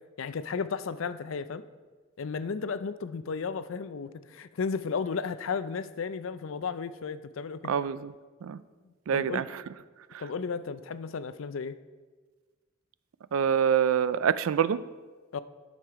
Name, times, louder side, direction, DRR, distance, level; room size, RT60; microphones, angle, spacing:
voice 1, 0.2-1.6 2.2-7.6 9.1-9.5 10.2-11.8 15.3-15.4, left 5 dB, 75° left, 0.5 m, -34 dB
voice 2, 7.7-8.1 8.4-8.6 9.1-9.6 13.3-14.8, right 8 dB, 90° right, 0.4 m, -26 dB
10.5 x 6.6 x 4.7 m
head